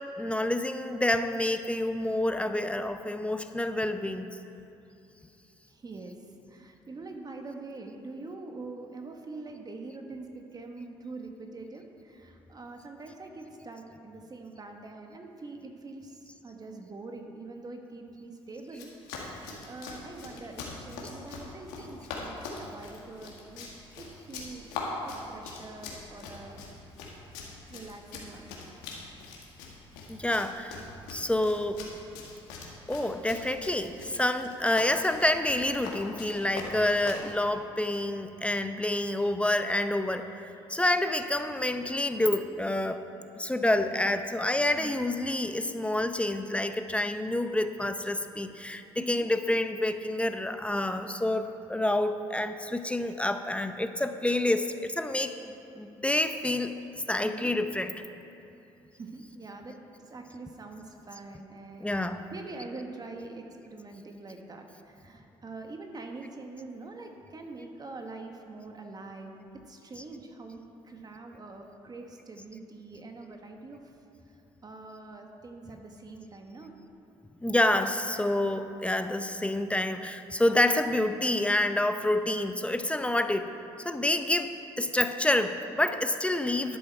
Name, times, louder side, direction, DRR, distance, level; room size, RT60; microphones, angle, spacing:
voice 1, 0.2-4.4 30.1-30.8 31.1-31.8 32.9-40.3 40.7-43.0 43.4-55.3 55.8-56.8 57.1-57.9 61.8-62.2 70.0-70.1 77.4-83.5 83.8-84.5 84.8-86.8, left 1 dB, 10° left, 8 dB, 0.7 m, -28 dB
voice 2, 5.7-18.9 19.6-23.7 24.0-24.7 25.0-26.6 27.7-28.5 44.7-45.0 48.7-49.3 57.2-57.5 58.9-59.8 60.0-61.9 62.3-69.4 69.7-74.0 74.3-76.8, right 3 dB, 35° right, 3 dB, 1.3 m, -44 dB
Run, 18.7-37.3, left 4 dB, 85° left, 1.8 m, -42 dB
11.5 x 10.0 x 4.5 m, 2.8 s
supercardioid pair, 65°, 12 cm